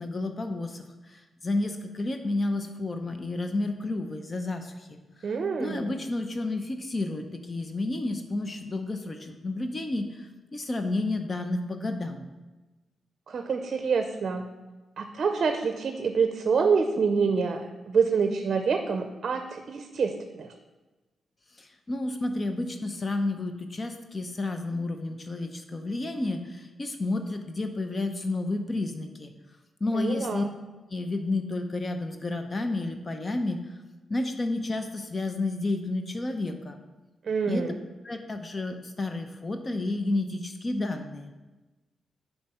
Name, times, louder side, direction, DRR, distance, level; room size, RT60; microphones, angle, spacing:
voice 1, 0.0-5.0 5.6-12.2 21.6-29.3 29.8-30.4 30.9-33.6 34.1-36.8 37.5-37.7 38.0-41.3, left 2 dB, 35° left, 6 dB, 0.7 m, -31 dB
voice 2, 5.2-5.9 13.3-14.5 15.0-20.5 29.9-30.5 37.2-37.7, right 5 dB, 60° right, 6 dB, 0.5 m, -27 dB
6.8 x 4.5 x 5.5 m, 1.2 s
cardioid pair, 65°, 0 cm